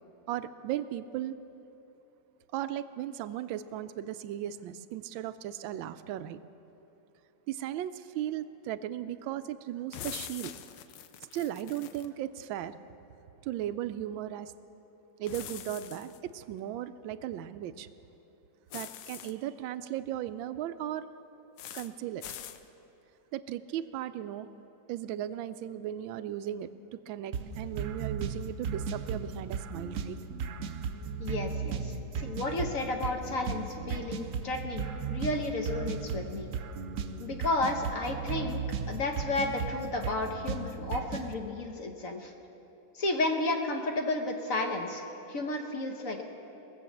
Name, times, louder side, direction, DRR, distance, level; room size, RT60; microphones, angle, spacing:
voice 1, 0.3-1.3 2.5-6.4 7.5-10.5 11.3-12.7 13.4-14.5 15.2-17.9 18.7-21.0 21.7-22.2 23.3-24.5 24.9-30.2, right 11 dB, 90° right, 12 dB, 1.3 m, -36 dB
sound 1, 9.9-12.1 15.3-16.2 18.7-19.3 21.6-21.9 22.2-22.6, left 10 dB, 75° left, 1.3 m, -43 dB
sound 2, 27.3-41.3, right 5 dB, 75° right, 0.7 m, -36 dB
voice 2, 31.2-36.5 37.2-38.6 38.9-42.3 42.9-46.2, left 2 dB, 55° left, 3 dB, 1.2 m, -32 dB
20.5 x 7.6 x 7.2 m, 2.9 s
omnidirectional pair, 2.1 m